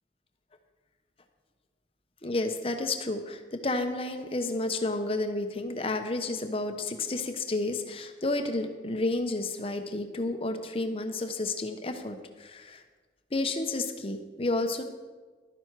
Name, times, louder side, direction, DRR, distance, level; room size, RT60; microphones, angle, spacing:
voice 1, 2.2-12.8 13.3-14.8, left 2 dB, 30° left, 6 dB, 0.9 m, -31 dB
11.5 x 10.5 x 4.8 m, 1.4 s
head